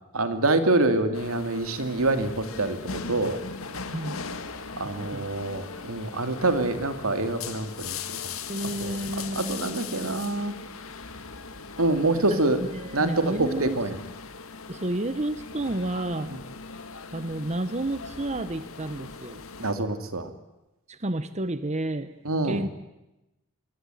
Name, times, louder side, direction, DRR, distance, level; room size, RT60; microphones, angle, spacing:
voice 1, 0.1-3.4 4.8-8.0 8.8-9.0 9.4-10.5 11.8-12.6 12.9-14.0 19.6-20.3 22.2-22.6, right 2 dB, 85° right, 8 dB, 2.7 m, -26 dB
sound 1, 1.1-19.7, left 5 dB, 75° left, 2.1 m, -39 dB
voice 2, 3.9-4.2 4.8-5.3 8.5-9.8 12.1-12.2 12.7-13.8 14.7-16.4 17.1-19.4 20.9-22.2 22.4-22.7, right 1 dB, 35° right, 12 dB, 1.0 m, -31 dB
26.0 x 22.5 x 9.4 m, 0.96 s
head